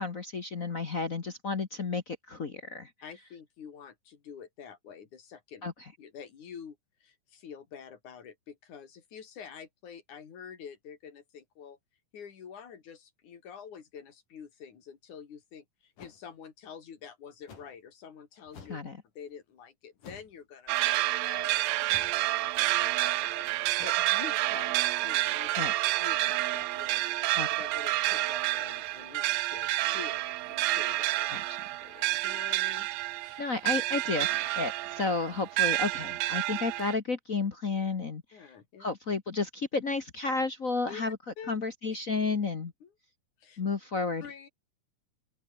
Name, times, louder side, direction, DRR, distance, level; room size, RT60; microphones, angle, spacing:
voice 1, 0.0-2.9 5.6-5.7 18.7-18.9 25.6-25.7 27.3-27.5 31.3-31.4 33.4-38.2 38.8-41.2 41.5-42.7 43.6-44.2, left 4 dB, 45° left, 1.1 m, -32 dB
voice 2, 3.0-5.7 6.0-11.8 12.1-18.8 19.2-25.6 26.0-31.4 31.8-32.9 33.2-33.4 38.3-38.9 40.9-41.6 42.8-42.9 43.4-43.6 44.2-44.5, left 7 dB, 70° left, 4.3 m, -47 dB
sound 1, 16.0-16.2 17.5-17.8 18.5-18.9 20.0-20.4 21.9-22.2 23.8-23.9, left 5 dB, 90° left, 6.0 m, -49 dB
sound 2, 20.7-37.0, right 17 dB, 80° right, 1.7 m, -29 dB
open air
omnidirectional pair, 3.6 m